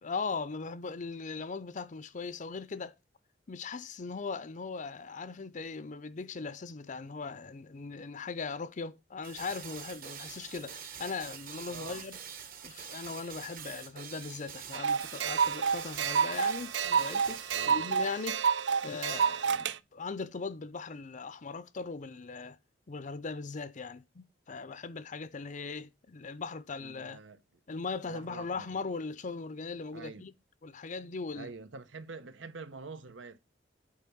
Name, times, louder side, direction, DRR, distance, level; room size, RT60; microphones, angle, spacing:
voice 1, 0.0-2.9 3.5-12.2 12.6-18.4 18.8-22.6 22.9-27.2 27.7-30.3 30.6-31.5, left 4 dB, 45° left, 0.6 m, -39 dB
sound 1, 9.2-17.8, right 8 dB, 50° right, 1.3 m, -45 dB
voice 2, 11.7-12.0 17.5-17.8 26.8-27.4 28.0-28.8 29.9-30.3 31.3-33.4, right 4 dB, 90° right, 0.9 m, -46 dB
sound 2, 14.7-19.7, right 6 dB, 65° right, 0.5 m, -29 dB
8.5 x 3.5 x 6.2 m
head